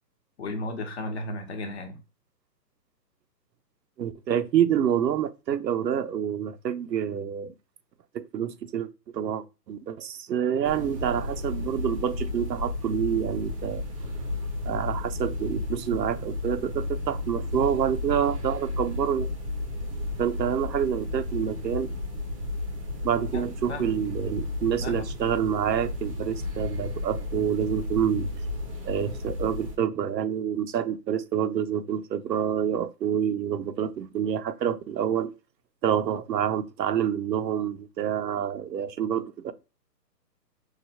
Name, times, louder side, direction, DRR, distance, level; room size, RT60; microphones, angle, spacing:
voice 1, 0.4-2.0 23.3-23.9 24.8-25.0, left 2 dB, 40° left, 0.9 m, -34 dB
voice 2, 4.0-7.5 8.1-8.9 9.1-13.8 14.6-19.3 20.2-21.9 23.0-28.3 28.8-35.3 35.8-39.5, right 9 dB, 85° right, 0.6 m, -27 dB
sound 1, 10.6-29.8, left 2 dB, 20° right, 0.5 m, -33 dB
4.7 x 2.1 x 2.8 m
hypercardioid pair, 140°, 50 cm